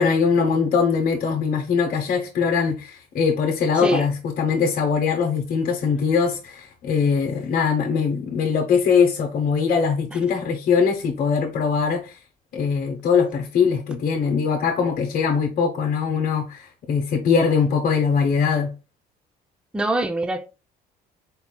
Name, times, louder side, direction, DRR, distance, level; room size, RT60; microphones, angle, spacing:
voice 1, 0.0-12.2 12.5-18.7, left 6 dB, 55° left, 0.9 m, -21 dB
voice 2, 3.8-4.1 10.1-10.2 19.7-20.5, right 2 dB, 5° right, 0.4 m, -24 dB
4.2 x 4.1 x 2.2 m
cardioid pair, 110°, 17 cm